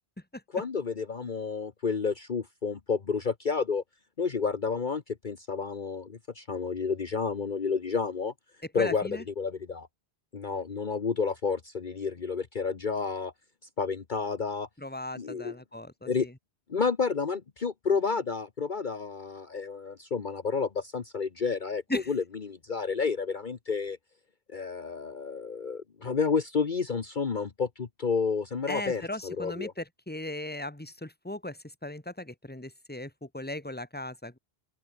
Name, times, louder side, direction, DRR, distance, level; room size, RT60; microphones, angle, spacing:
voice 1, 0.5-3.8 4.2-8.3 8.7-9.9 10.3-13.3 13.8-14.7 15.1-15.6 16.1-16.3 16.7-24.0 24.5-29.7, left 5 dB, 50° left, 1.3 m, -30 dB
voice 2, 8.7-9.2 14.8-16.3 21.9-22.1 28.7-34.4, left 1 dB, 10° left, 2.1 m, -37 dB
open air
omnidirectional pair, 1.1 m